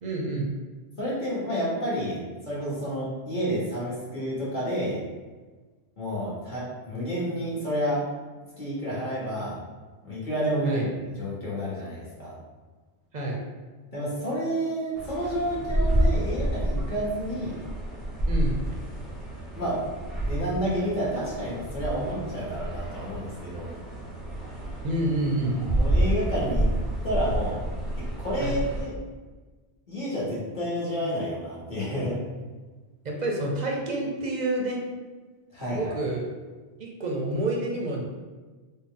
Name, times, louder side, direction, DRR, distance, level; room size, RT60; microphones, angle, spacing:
voice 1, 0.0-0.5 10.7-10.9 13.1-13.4 18.3-18.7 24.8-25.8 28.4-28.6 33.0-34.8 35.7-36.2 36.8-38.0, right 1 dB, 50° right, -1 dB, 0.5 m, -28 dB
voice 2, 1.0-2.2 2.5-5.0 6.0-8.0 8.6-9.6 10.0-10.9 11.1-12.4 13.9-17.6 19.6-19.8 20.3-23.7 25.8-26.7 27.0-27.6 28.0-28.9 29.9-32.2 35.5-35.9, equal, 45° left, -7 dB, 1.1 m, -30 dB
sound 1, 15.0-28.9, right 1 dB, ahead, 0.4 m, -29 dB
3.7 x 2.1 x 3.6 m, 1.3 s
omnidirectional pair, 1.2 m